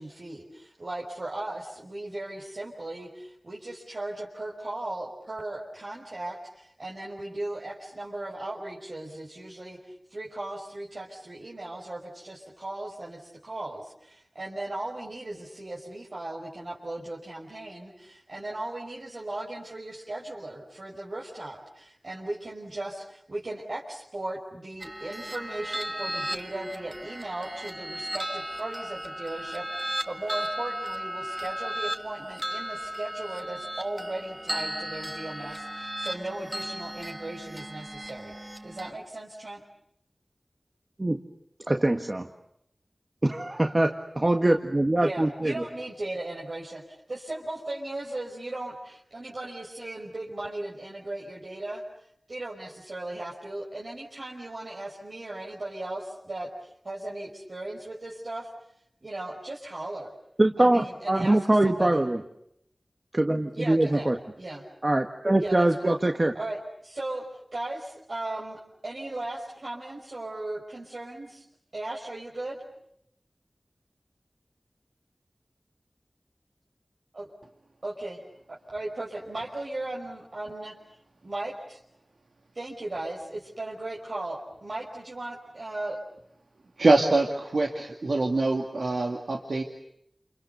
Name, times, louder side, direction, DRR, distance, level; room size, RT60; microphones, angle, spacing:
voice 1, 0.0-39.6 45.0-51.8 52.3-58.5 59.0-60.1 60.6-61.4 61.6-62.0 63.5-64.1 64.4-64.6 65.4-66.0 66.4-71.4 71.7-72.6 77.2-77.3 77.8-78.2 78.5-80.7 81.2-81.8 82.5-86.0, right 2 dB, 70° right, -4 dB, 5.5 m, -37 dB
sound 1, 24.8-38.9, right 1 dB, 25° right, 2.1 m, -35 dB
voice 2, 41.7-42.3 43.2-45.5 60.4-62.2 63.1-64.2 64.8-66.3, right 1 dB, 40° right, 4 dB, 1.7 m, -23 dB
voice 3, 86.8-89.6, right 2 dB, 90° right, 1 dB, 2.4 m, -24 dB
29.0 x 29.0 x 6.9 m, 0.74 s
wide cardioid pair, 45°, 0 cm